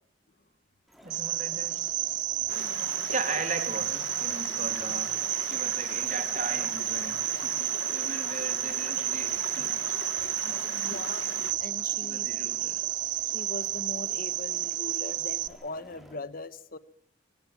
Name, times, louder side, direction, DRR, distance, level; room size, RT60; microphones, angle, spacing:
sound 1, 0.9-16.2, equal, ahead, 3.8 m, -53 dB
voice 1, 1.0-1.8 2.9-10.0 10.4-10.9 12.0-12.9, right 3 dB, 40° right, 2.7 m, -38 dB
Cricket, 1.1-15.5, right 13 dB, 75° right, 0.8 m, -31 dB
Stream, 2.5-11.5, left 5 dB, 85° left, 1.0 m, -41 dB
voice 2, 10.8-11.2 11.6-12.3 13.3-16.8, left 2 dB, 50° left, 1.0 m, -40 dB
24.5 x 17.5 x 7.3 m
head